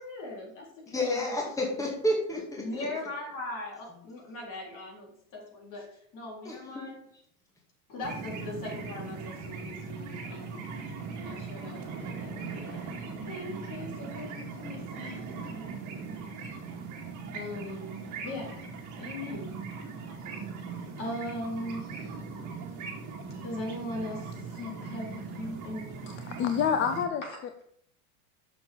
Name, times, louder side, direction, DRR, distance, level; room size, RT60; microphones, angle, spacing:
voice 1, 0.0-1.3 1.7-1.8 2.6-7.1 7.9-10.7 11.2-15.8 17.3-18.6 19.0-19.5 21.0-22.2 23.4-24.4 24.8-26.1, left 1 dB, 45° left, -2 dB, 3.9 m, -40 dB
voice 2, 0.9-2.6 6.5-6.8, left 1 dB, 5° left, -1 dB, 2.0 m, -30 dB
sound 1, 8.0-27.1, right 5 dB, 40° right, 2.2 m, -40 dB
voice 3, 24.5-25.2 26.1-27.2, left 7 dB, 25° left, 8 dB, 0.5 m, -29 dB
6.9 x 6.0 x 5.3 m, 0.66 s
supercardioid pair, 125°, 45 cm